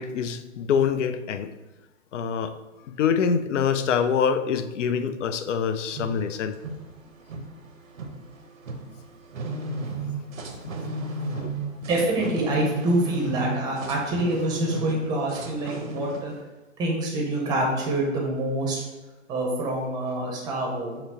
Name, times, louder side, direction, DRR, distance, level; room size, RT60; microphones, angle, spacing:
voice 1, 0.0-1.5 2.1-2.6 2.9-6.6 10.6-10.7 11.3-11.6, left 7 dB, 65° left, 10 dB, 0.5 m, -25 dB
sound 1, 5.7-16.4, right 1 dB, 90° right, 0.9 m, -34 dB
voice 2, 11.8-16.3 16.8-18.8 19.3-21.0, right 1 dB, 10° right, -2 dB, 0.6 m, -26 dB
5.9 x 2.0 x 4.2 m, 1.1 s
hypercardioid pair, 135°, 39 cm